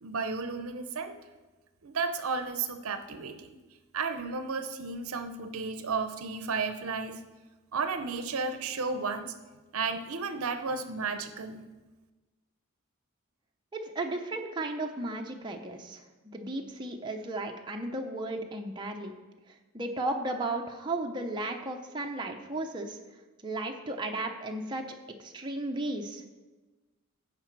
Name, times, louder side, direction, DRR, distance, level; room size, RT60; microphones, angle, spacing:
voice 1, 0.0-1.2 1.8-3.5 3.9-7.2 7.7-9.3 9.7-11.7, right 4 dB, 70° right, 9 dB, 0.6 m, -33 dB
voice 2, 13.7-16.0 16.3-19.1 19.7-23.0 23.4-26.2, right 2 dB, 20° right, 2 dB, 0.7 m, -34 dB
15.0 x 5.1 x 4.6 m, 1.2 s
head